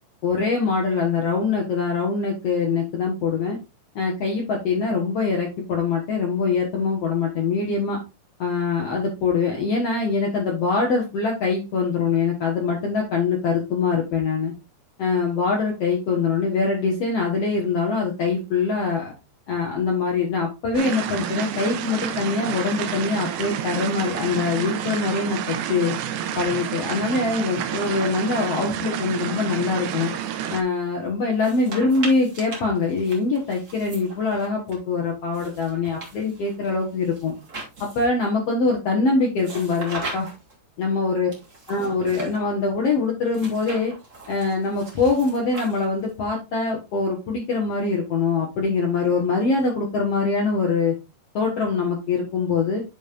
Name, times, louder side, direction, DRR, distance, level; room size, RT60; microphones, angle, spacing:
voice 1, 0.2-3.6 3.9-8.0 8.4-14.5 15.0-19.1 19.5-25.9 26.3-30.1 30.5-37.3 37.9-40.3 40.8-41.3 41.7-43.9 44.3-50.9 51.3-52.8, left 4 dB, 75° left, -1 dB, 1.4 m, -23 dB
sound 1, 20.7-30.6, right 10 dB, 80° right, 2.3 m, -29 dB
sound 2, 31.3-34.8 35.3-38.2 39.4-40.5 41.3-42.4 43.3-46.1, right 3 dB, 60° right, 0.8 m, -39 dB
10.0 x 5.3 x 2.5 m, 0.25 s
omnidirectional pair, 5.0 m